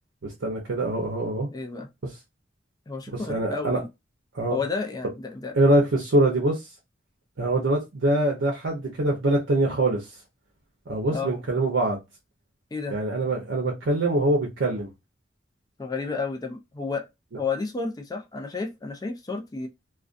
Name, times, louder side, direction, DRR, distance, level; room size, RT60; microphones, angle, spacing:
voice 1, 0.2-1.5 2.0-2.1 3.1-3.8 4.3-4.6 5.5-6.7 7.4-10.1 10.9-12.0 12.9-14.9, right 1 dB, 80° right, 0.7 m, -24 dB
voice 2, 1.5-1.9 2.9-3.9 4.5-5.5 11.1-11.3 12.7-13.0 15.8-17.1 17.3-19.7, left 4 dB, 20° left, 0.4 m, -31 dB
2.4 x 2.2 x 2.4 m
head